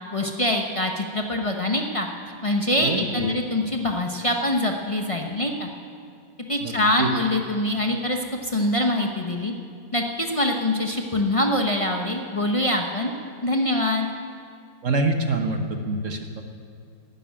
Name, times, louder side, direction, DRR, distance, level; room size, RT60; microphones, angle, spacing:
voice 1, 0.1-2.1 2.4-5.7 6.5-9.5 9.9-13.1 13.4-14.1, left 1 dB, 45° left, 2 dB, 0.4 m, -24 dB
voice 2, 2.8-3.3 6.6-6.7 7.0-7.1 14.8-16.4, right 2 dB, 50° right, 5 dB, 1.2 m, -25 dB
11.5 x 10.0 x 9.6 m, 2.2 s
omnidirectional pair, 2.1 m